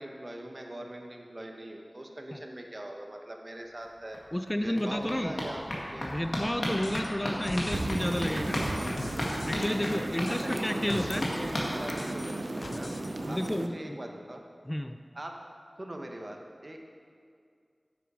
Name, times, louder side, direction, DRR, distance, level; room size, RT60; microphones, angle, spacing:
voice 1, 0.0-4.2 4.6-6.1 10.3-12.9 13.3-14.4 15.1-15.3 15.8-16.8, right 1 dB, 45° right, 2 dB, 1.2 m, -41 dB
sound 1, 3.8-3.9 4.1-12.6 12.9-13.0 13.3-13.4 13.6-13.7, left 1 dB, 85° left, 2.0 m, -36 dB
voice 2, 4.3-5.4 6.0-8.6 9.5-11.3 13.2-14.0 14.7-15.0, left 1 dB, 20° left, 8 dB, 0.4 m, -31 dB
sound 2, 6.8-7.1 7.4-11.5 12.0-13.1 13.4-13.5, left 2 dB, 70° left, 0.5 m, -43 dB
sound 3, 7.7-13.7, right 2 dB, 60° right, 0.7 m, -35 dB
10.0 x 8.0 x 4.9 m, 2.2 s
wide cardioid pair, 40°, 0 cm